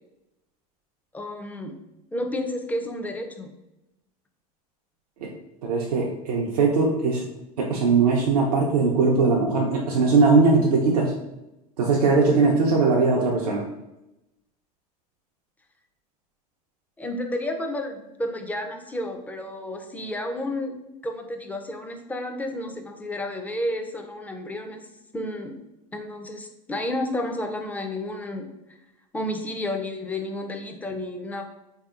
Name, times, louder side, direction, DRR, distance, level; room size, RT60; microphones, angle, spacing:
voice 1, 1.1-1.7 2.1-3.5 17.0-20.7 21.0-24.9 25.1-25.5 25.9-28.5 29.1-31.4, left 1 dB, 10° left, 4 dB, 0.4 m, -31 dB
voice 2, 5.6-7.2 7.6-11.1 11.8-13.6, right 4 dB, 85° right, -2 dB, 0.5 m, -20 dB
3.3 x 2.7 x 2.4 m, 0.91 s
hypercardioid pair, 85°, 19 cm